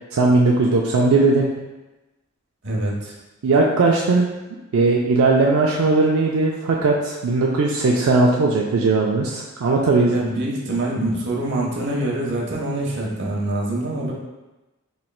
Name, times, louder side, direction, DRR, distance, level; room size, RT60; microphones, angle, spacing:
voice 1, 0.1-1.5 3.4-4.3 4.7-10.1, right 3 dB, 85° right, -2 dB, 0.4 m, -18 dB
voice 2, 2.6-3.1 10.1-14.1, right 1 dB, 60° right, -3 dB, 0.8 m, -25 dB
4.3 x 3.1 x 2.3 m, 1.1 s
head